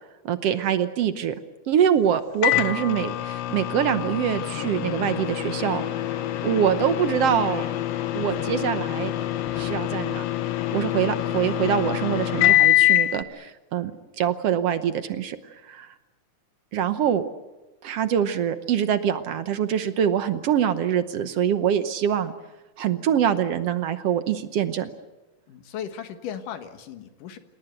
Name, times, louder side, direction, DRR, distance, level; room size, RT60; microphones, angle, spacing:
voice 1, 0.2-1.3 1.7-5.8 6.4-7.6 8.1-9.1 9.5-10.2 10.7-13.9 14.2-15.4 15.6-15.9 16.7-17.2 17.8-22.3 22.8-24.9, right 9 dB, 65° right, 11 dB, 1.7 m, -24 dB
Microwave oven, 2.4-13.2, left 15 dB, 65° left, 1.9 m, -25 dB
sound 1, 7.3-7.7 8.3-9.8 10.1-10.7, left 2 dB, 35° left, 4.4 m, -46 dB
voice 2, 25.5-27.4, left 8 dB, 85° left, 8 dB, 3.1 m, -36 dB
28.5 x 18.0 x 8.0 m, 1.1 s
omnidirectional pair, 3.6 m